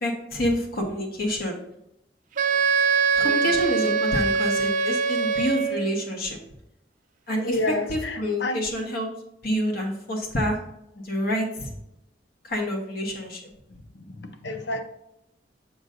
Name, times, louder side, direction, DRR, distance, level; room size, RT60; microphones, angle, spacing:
voice 1, 0.0-1.6 3.1-6.4 7.3-9.1 9.4-10.6 10.9-11.7 12.4-13.4, equal, 60° left, 1 dB, 1.2 m, -27 dB
Wind instrument woodwind instrument, 2.4-5.9, right 5 dB, 50° right, 0.4 m, -23 dB
voice 2, 3.2-3.5 7.4-8.6 13.7-13.8 14.1-14.8, left 2 dB, 75° left, 7 dB, 0.7 m, -30 dB
6.4 x 6.1 x 2.6 m, 0.85 s
head